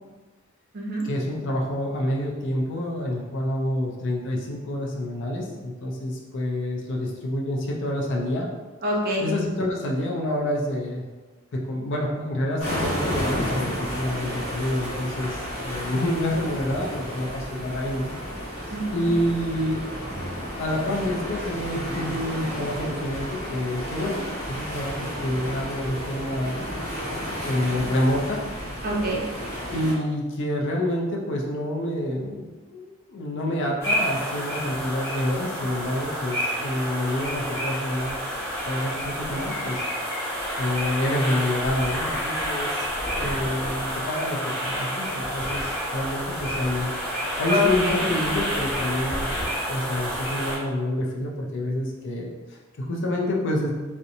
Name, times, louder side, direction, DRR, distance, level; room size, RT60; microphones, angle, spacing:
voice 1, 1.0-8.5 9.2-11.1 11.5-18.1 18.6-19.8 20.6-24.2 24.5-26.6 27.4-28.4 29.7-38.2 38.7-39.8 40.6-42.9 43.2-46.9 47.4-49.3 49.7-53.7, left 1 dB, 60° left, -1 dB, 0.5 m, -28 dB
voice 2, 8.8-9.2 18.7-19.1 28.8-29.2 47.5-48.0, left 1 dB, 50° right, -3 dB, 0.6 m, -25 dB
sound 1, 12.6-29.9, equal, 80° left, 0.8 m, -32 dB
sound 2, 33.8-50.6, equal, 15° left, 0.9 m, -29 dB
2.8 x 2.1 x 2.5 m, 1.2 s
head